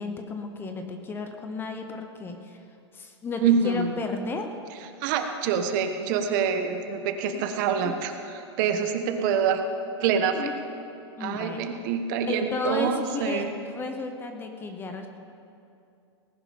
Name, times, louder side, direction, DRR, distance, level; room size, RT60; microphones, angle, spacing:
voice 1, 0.0-2.6 2.9-4.5 7.3-7.4 7.8-8.0 10.3-10.6 11.2-11.6 12.3-15.1, left 3 dB, 15° left, 5 dB, 0.8 m, -33 dB
voice 2, 3.4-3.9 5.0-9.6 10.0-10.5 11.2-13.5, right 6 dB, 45° right, 6 dB, 1.2 m, -26 dB
18.5 x 10.5 x 5.1 m, 2.6 s
supercardioid pair, 155°, 15 cm